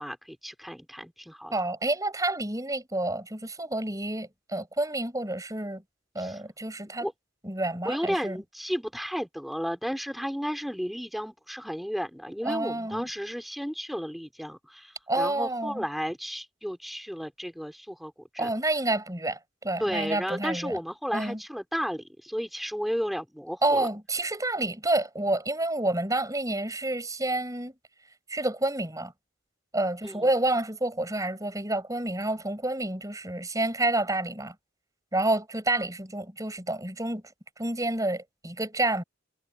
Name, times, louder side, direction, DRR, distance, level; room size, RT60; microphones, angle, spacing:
voice 1, 0.0-1.5 6.2-6.4 7.0-7.1 7.8-18.5 19.8-23.9 30.0-30.3, equal, ahead, 4.2 m, -33 dB
voice 2, 1.5-5.8 6.1-7.1 7.4-8.4 12.4-13.1 15.1-15.8 18.4-20.8 21.1-21.4 23.6-27.7 28.3-29.1 29.7-34.6 35.1-37.2 37.6-39.0, right 2 dB, 15° right, 5.4 m, -29 dB
head